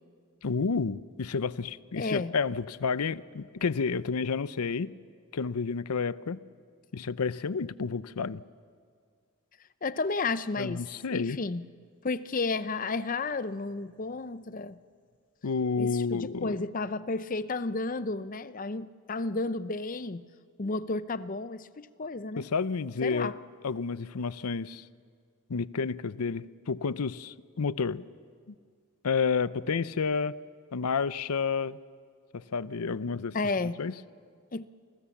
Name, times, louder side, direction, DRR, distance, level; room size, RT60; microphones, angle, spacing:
voice 1, 0.4-4.9 5.3-6.4 6.9-8.4 10.6-11.4 15.4-16.6 22.4-23.3 23.6-24.9 25.5-28.1 29.0-30.4 30.7-31.8 32.3-33.4 33.8-33.9, left 5 dB, 85° left, 17 dB, 0.6 m, -30 dB
voice 2, 1.9-2.3 9.8-10.8 11.1-11.6 12.0-14.8 15.8-20.2 20.6-22.5 23.0-23.3 33.3-33.8 34.5-34.6, left 3 dB, 35° left, 14 dB, 0.6 m, -32 dB
30.0 x 24.0 x 7.2 m, 2.1 s
head